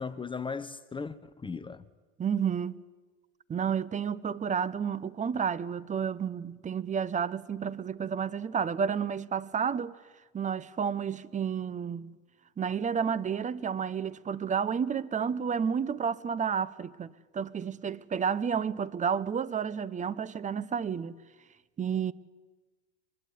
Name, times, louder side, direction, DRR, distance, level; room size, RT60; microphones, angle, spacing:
voice 1, 0.0-1.8, left 5 dB, 15° left, 1.1 m, -37 dB
voice 2, 2.2-2.8 3.5-10.0 10.3-12.1 12.6-21.1 21.8-22.1, right 7 dB, 20° right, 1.0 m, -31 dB
24.0 x 21.0 x 9.6 m
hypercardioid pair, 100°, 35 cm